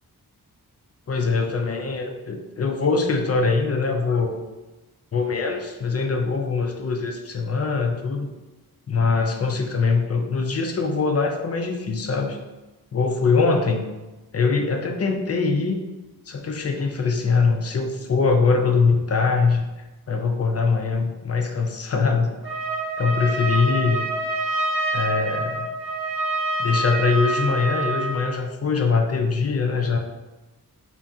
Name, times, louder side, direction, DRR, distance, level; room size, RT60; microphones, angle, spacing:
voice 1, 1.1-4.4 5.1-8.3 8.9-12.4 12.9-13.9 14.3-15.8 16.3-19.7 20.1-22.4 23.0-24.0 24.9-25.7 26.6-30.0, left 4 dB, 40° left, 3 dB, 0.4 m, -22 dB
Trumpet, 22.4-28.3, right 2 dB, 60° right, 1.2 m, -26 dB
2.9 x 2.3 x 2.6 m, 1.1 s
cardioid pair, 50°, 40 cm